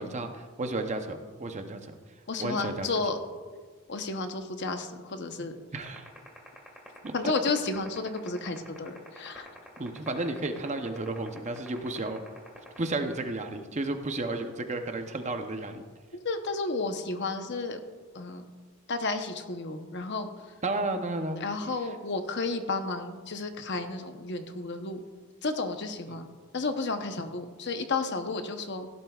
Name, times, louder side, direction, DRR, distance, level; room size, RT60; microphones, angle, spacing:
voice 1, 0.0-2.0 2.4-2.9 5.7-6.1 7.0-7.3 9.8-12.2 12.8-15.8 20.6-21.4 21.8-21.9 26.1-26.2, right 2 dB, 30° right, 6 dB, 0.7 m, -33 dB
voice 2, 2.3-3.2 3.9-5.6 7.1-9.6 16.2-17.8 18.1-18.4 18.9-20.3 21.4-25.0 25.4-28.9, left 3 dB, 50° left, 7 dB, 0.9 m, -32 dB
sound 1, 5.8-13.3, equal, 5° right, 1.7 m, -46 dB
16.5 x 11.0 x 2.4 m, 1.5 s
head